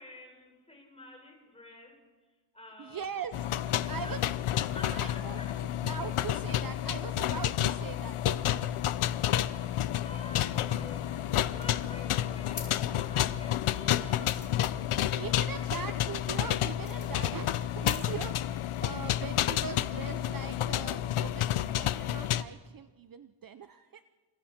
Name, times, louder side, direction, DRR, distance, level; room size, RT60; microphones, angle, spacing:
voice 1, 0.0-2.0 2.5-4.2 4.5-5.6 10.0-14.5 14.8-15.6, left 1 dB, 10° left, 2 dB, 5.1 m, -49 dB
voice 2, 2.8-3.3 3.9-4.3 4.9-8.2 15.1-21.5 21.7-24.1, right 7 dB, 45° right, 10 dB, 0.8 m, -41 dB
sound 1, 3.3-22.4, left 12 dB, 90° left, 0.8 m, -30 dB
sound 2, 10.8-18.9, left 3 dB, 35° left, 5.1 m, -47 dB
29.0 x 27.0 x 4.4 m, 1.3 s
wide cardioid pair, 150°, 49 cm